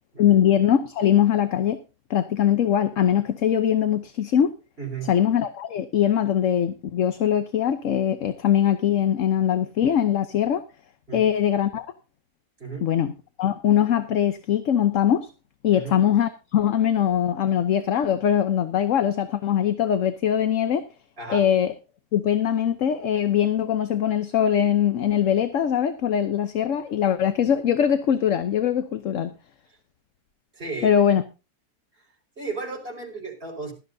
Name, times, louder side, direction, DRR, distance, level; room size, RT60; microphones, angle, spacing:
voice 1, 0.2-1.8 2.1-4.5 5.1-10.6 11.1-11.9 12.8-13.1 13.4-15.3 15.6-20.8 21.3-21.7 22.1-29.3 30.8-31.2, left 9 dB, 60° left, 1.1 m, -22 dB
voice 2, 4.8-5.1 11.1-11.3 12.6-12.9 15.7-16.0 21.2-21.5 30.5-31.0 32.4-33.7, right 4 dB, 35° right, 5.5 m, -34 dB
17.0 x 13.0 x 2.7 m
omnidirectional pair, 1.7 m